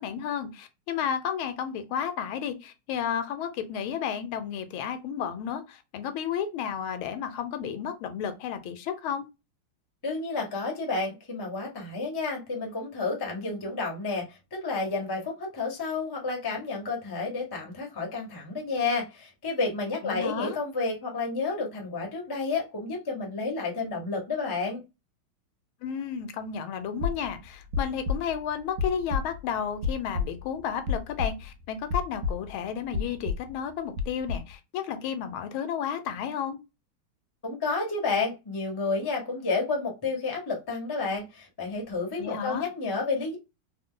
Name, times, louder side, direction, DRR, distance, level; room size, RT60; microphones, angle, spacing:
voice 1, 0.0-9.3 20.0-20.6 25.8-36.6 42.2-42.7, left 8 dB, 80° left, 1.4 m, -32 dB
voice 2, 10.0-14.2 14.5-24.8 37.4-43.4, left 3 dB, 25° left, 0.5 m, -30 dB
sound 1, 27.0-31.6 31.9-32.6 32.9-33.5 34.0-34.5, left 5 dB, 60° right, 1.2 m, -31 dB
3.8 x 2.1 x 3.7 m
omnidirectional pair, 2.3 m